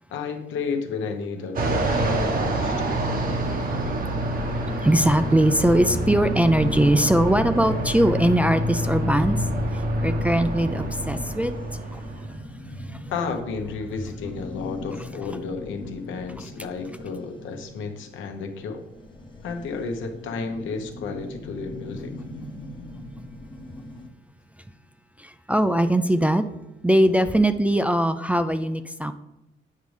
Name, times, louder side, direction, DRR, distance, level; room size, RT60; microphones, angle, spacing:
voice 1, 0.1-2.7 13.1-18.8 19.4-22.1, left 5 dB, 80° left, 5 dB, 0.9 m, -32 dB
Fixed-wing aircraft airplane, 1.6-12.4, right 1 dB, 45° right, 1.0 m, -27 dB
voice 2, 4.6-9.5 9.7-11.5 11.9-12.0 12.8-13.0 25.2-26.4 26.8-29.1, right 1 dB, 5° right, 9 dB, 0.3 m, -21 dB
sound 1, 10.1-24.1, left 1 dB, 25° left, 0.8 m, -41 dB
8.4 x 5.1 x 3.2 m, 0.93 s
cardioid pair, 90°, 20 cm